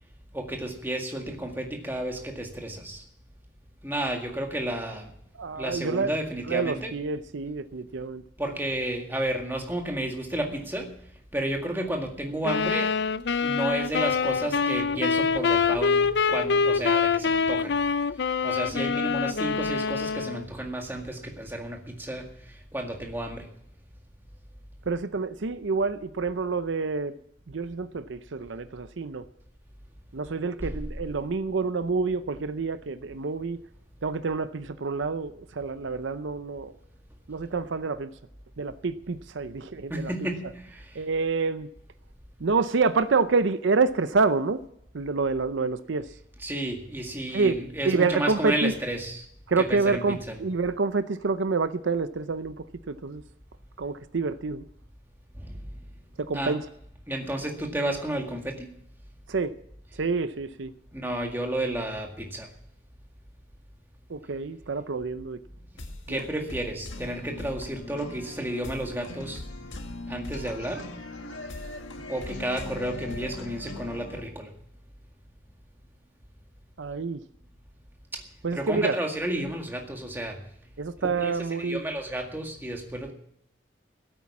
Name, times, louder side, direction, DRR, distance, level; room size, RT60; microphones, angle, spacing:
voice 1, 0.3-3.0 3.8-5.1 5.5-6.9 8.4-10.9 11.3-12.9 13.4-17.8 18.4-23.5 30.6-30.7 39.9-41.0 46.4-49.3 49.6-50.4 55.4-55.6 56.3-56.6 57.1-58.7 60.9-62.5 66.1-69.4 70.1-70.9 72.1-74.5 78.1-78.2 78.5-80.4 81.0-83.1, right 1 dB, 10° right, 2 dB, 1.9 m, -32 dB
voice 2, 5.3-6.1 6.5-8.2 24.9-27.1 27.5-29.2 30.1-33.6 34.0-36.7 37.3-38.1 38.6-40.1 40.9-41.7 42.4-44.6 44.9-46.1 47.3-47.6 47.8-48.7 49.5-53.2 53.8-54.6 56.2-56.6 59.3-59.5 60.0-60.7 64.1-65.4 66.1-66.2 76.8-77.2 78.4-79.0 80.8-81.8, right 4 dB, 75° right, 12 dB, 0.6 m, -27 dB
sound 1, 12.4-20.4, left 5 dB, 60° left, 0.5 m, -25 dB
sound 2, 65.8-74.2, left 2 dB, 80° left, 1.7 m, -39 dB
16.0 x 9.0 x 7.2 m, 0.72 s
head